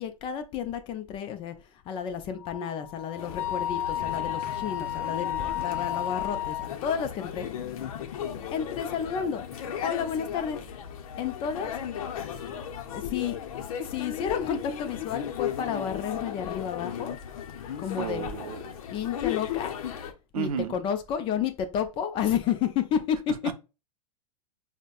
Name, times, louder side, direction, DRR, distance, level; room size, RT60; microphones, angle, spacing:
voice 1, 0.0-1.5 1.9-7.5 8.5-9.4 9.8-10.6 11.2-11.7 12.9-13.4 13.8-17.1 17.8-18.3 18.9-19.7 20.4-23.3, left 8 dB, 30° left, 0.5 m, -31 dB
Wind instrument woodwind instrument, 2.4-6.7, left 11 dB, 5° left, 0.8 m, -32 dB
sound 1, 3.2-20.1, left 9 dB, 70° left, 0.7 m, -36 dB
voice 2, 18.0-18.7 20.3-20.8 23.4-23.5, right 8 dB, 75° right, 0.6 m, -32 dB
5.1 x 2.1 x 2.4 m
hypercardioid pair, 135°, 19 cm